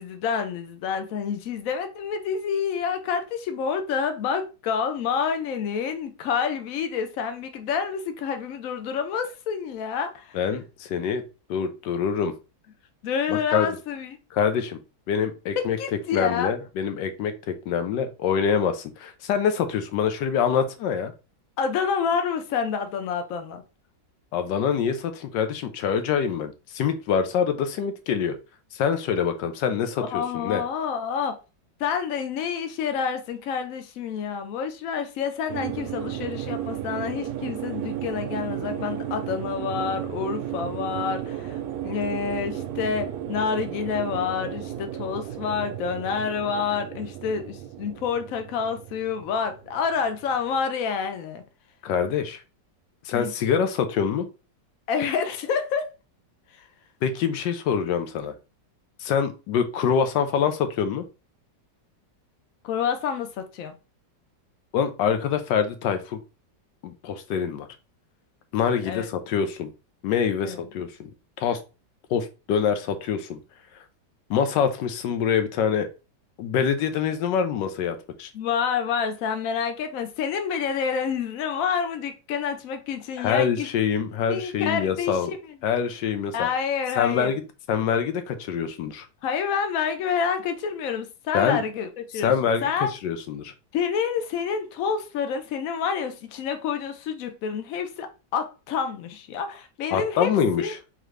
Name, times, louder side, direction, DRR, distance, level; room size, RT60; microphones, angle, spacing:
voice 1, 0.0-10.4 13.0-14.2 15.6-16.5 21.6-23.6 30.0-31.4 31.8-41.6 41.8-51.4 53.1-53.3 54.9-55.8 62.6-63.7 68.9-69.0 70.4-70.6 78.3-83.7 84.3-85.4 86.3-87.3 89.2-92.3 92.6-92.9 93.7-100.3 100.6-100.7, left 6 dB, 60° left, 1.0 m, -28 dB
voice 2, 10.3-11.2 11.5-12.3 13.3-13.7 14.3-14.8 15.1-15.8 16.1-21.1 24.3-28.4 28.7-30.6 51.8-52.4 53.0-54.3 57.0-58.3 59.0-61.0 64.7-66.2 66.8-67.7 68.5-69.7 70.0-71.1 71.4-71.6 72.1-73.4 74.3-75.9 76.4-78.3 83.2-85.3 85.6-86.5 87.0-87.4 87.7-89.1 91.3-91.6 92.1-93.5 99.9-100.8, left 7 dB, 80° left, 1.3 m, -25 dB
sound 1, 35.5-50.3, right 11 dB, 70° right, 0.9 m, -34 dB
3.9 x 3.1 x 3.2 m
omnidirectional pair, 1.9 m